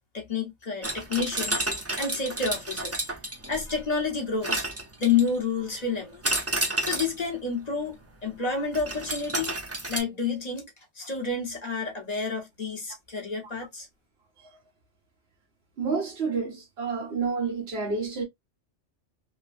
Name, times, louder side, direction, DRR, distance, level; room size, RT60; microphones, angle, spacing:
voice 1, 0.1-1.7 2.0-3.0 3.5-4.6 5.0-6.4 6.8-9.5 9.9-10.7 10.9-13.9, left 5 dB, 40° left, 0.9 m, -29 dB
sound 1, 0.8-3.8 4.4-5.4 6.2-7.2 8.7-10.0, right 2 dB, 25° right, 0.4 m, -30 dB
voice 2, 15.8-18.2, right 5 dB, 60° right, 1.3 m, -29 dB
3.2 x 2.2 x 2.4 m
omnidirectional pair, 1.2 m